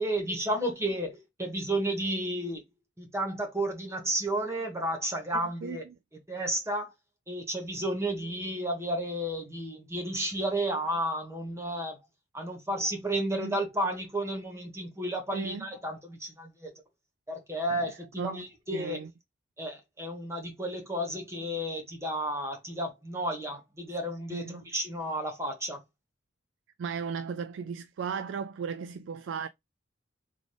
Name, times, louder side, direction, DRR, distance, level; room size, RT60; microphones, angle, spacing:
voice 1, 0.0-2.6 3.0-5.9 6.3-6.9 7.3-12.0 12.3-16.7 17.3-19.0 19.6-25.8, right 1 dB, 15° right, 1.4 m, -32 dB
voice 2, 5.3-5.8 13.4-13.6 15.3-15.7 17.7-17.8 18.2-18.5 18.7-19.1 24.3-24.7 26.8-29.5, right 6 dB, 85° right, 0.3 m, -36 dB
4.0 x 3.6 x 3.2 m
head